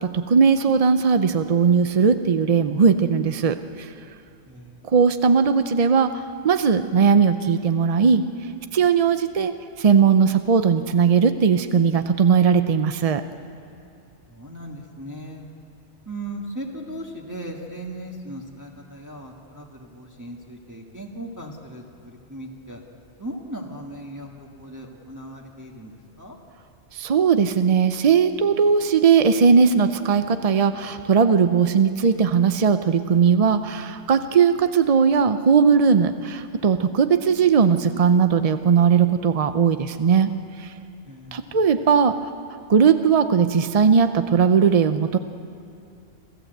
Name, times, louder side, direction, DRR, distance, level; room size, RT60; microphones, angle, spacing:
voice 1, 0.0-3.9 4.8-8.2 8.7-13.2 26.9-40.3 40.6-40.7 41.3-42.3 42.7-45.2, right 6 dB, 55° right, 10 dB, 0.4 m, -18 dB
voice 2, 4.5-4.9 14.3-15.5 16.0-22.8 23.2-26.4 41.1-41.6, right 1 dB, 15° right, -1 dB, 1.6 m, -38 dB
27.5 x 14.0 x 7.9 m, 2.5 s
omnidirectional pair, 1.4 m